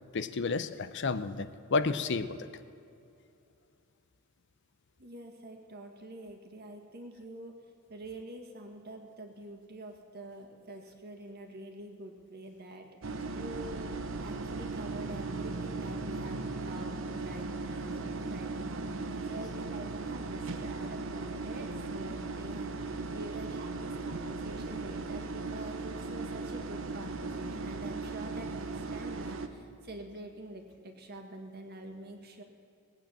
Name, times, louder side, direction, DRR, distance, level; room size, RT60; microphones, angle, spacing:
voice 1, 0.1-2.5, left 4 dB, 55° left, 12 dB, 0.6 m, -31 dB
voice 2, 5.0-7.6 7.9-32.4, right 2 dB, 50° right, 4 dB, 1.8 m, -46 dB
sound 1, 13.0-29.5, right 3 dB, 65° right, 0.9 m, -37 dB
19.5 x 8.9 x 7.4 m, 2.6 s
head